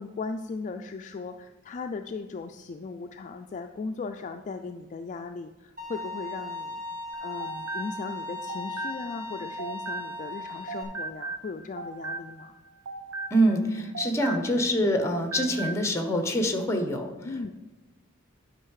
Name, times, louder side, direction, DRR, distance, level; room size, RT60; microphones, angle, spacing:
voice 1, 0.0-6.8 7.2-12.6 17.2-17.5, left 4 dB, 35° left, 6 dB, 0.3 m, -37 dB
Bowed string instrument, 5.8-10.8, left 2 dB, 40° right, 2.2 m, -37 dB
sound 1, 7.1-10.4 10.7-14.8 15.0-15.9, right 4 dB, 85° right, 0.6 m, -38 dB
voice 2, 13.3-17.1, equal, 15° left, 5 dB, 1.0 m, -25 dB
11.0 x 5.4 x 4.8 m, 1.2 s
head